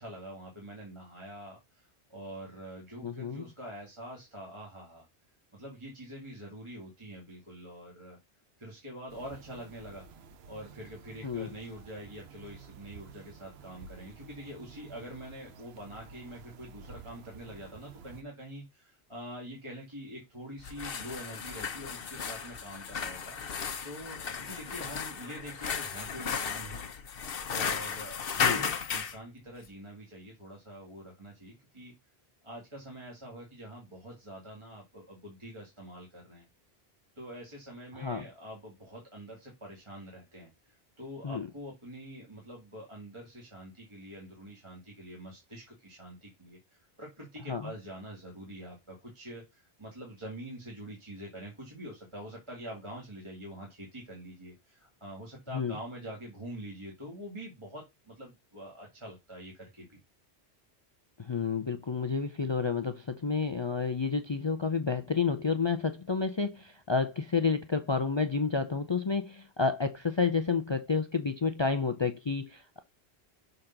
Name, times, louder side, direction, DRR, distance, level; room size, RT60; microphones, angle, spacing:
voice 1, 0.0-5.1 5.5-8.2 8.6-10.0 10.5-23.4 23.8-26.8 27.5-31.9 32.4-36.5 37.2-60.0, equal, 25° right, 2.1 m, -45 dB
voice 2, 3.0-3.4 11.2-11.5 28.4-28.6 37.9-38.3 41.2-41.5 47.5-47.7 55.5-55.8 61.2-72.8, left 5 dB, 35° left, 0.4 m, -30 dB
sound 1, 9.1-18.2, right 5 dB, 70° right, 0.9 m, -51 dB
sound 2, 20.6-29.2, left 6 dB, 60° left, 1.0 m, -34 dB
6.5 x 4.0 x 5.8 m
omnidirectional pair, 1.1 m